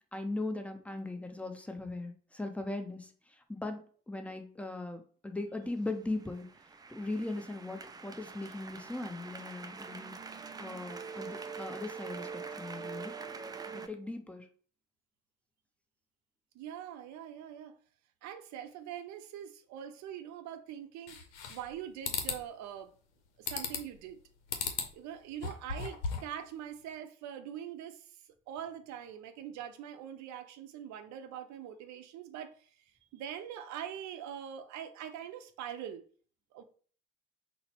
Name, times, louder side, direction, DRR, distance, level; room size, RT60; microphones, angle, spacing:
voice 1, 0.1-3.1 3.5-6.5 6.9-10.2 10.6-13.1 13.7-14.5, left 2 dB, 5° left, 0.7 m, -39 dB
sound 1, 5.8-13.9, right 5 dB, 10° right, 0.3 m, -44 dB
voice 2, 16.5-17.7 18.2-21.2 21.5-22.9 23.4-24.2 24.9-28.1 28.5-32.7 33.1-36.1 36.5-36.6, right 9 dB, 55° right, 0.6 m, -43 dB
sound 2, 21.1-21.7 22.0-22.4 23.5-24.0 24.5-24.9 25.3-26.4, left 5 dB, 80° left, 0.6 m, -36 dB
4.0 x 2.1 x 4.3 m
hypercardioid pair, 55°, 34 cm